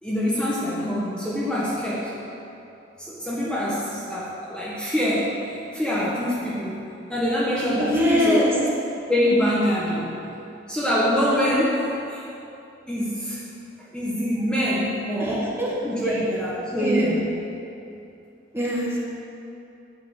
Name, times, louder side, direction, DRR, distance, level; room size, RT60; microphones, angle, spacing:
voice 1, 0.0-2.1 3.0-5.4 5.7-6.8 7.1-8.4 9.1-10.1 10.7-12.2 12.9-13.4 13.9-15.6 15.8-17.2, equal, 5° left, -8 dB, 1.6 m, -24 dB
voice 2, 7.8-8.5 15.2-15.7 16.8-17.2 18.5-19.0, equal, 15° right, -4 dB, 1.7 m, -23 dB
9.9 x 7.3 x 8.1 m, 2.7 s
head